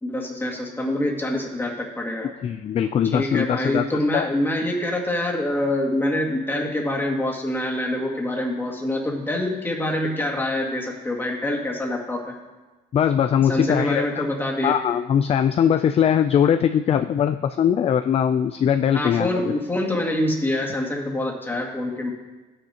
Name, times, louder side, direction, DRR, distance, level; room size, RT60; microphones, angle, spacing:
voice 1, 0.0-2.3 3.1-12.4 13.5-14.8 18.9-22.1, left 1 dB, 10° left, -2 dB, 2.1 m, -25 dB
voice 2, 2.4-3.9 4.1-4.3 12.9-14.0 14.6-19.4, left 8 dB, 35° left, 9 dB, 0.4 m, -21 dB
13.5 x 9.8 x 2.9 m, 1.2 s
cardioid pair, 110°, 17 cm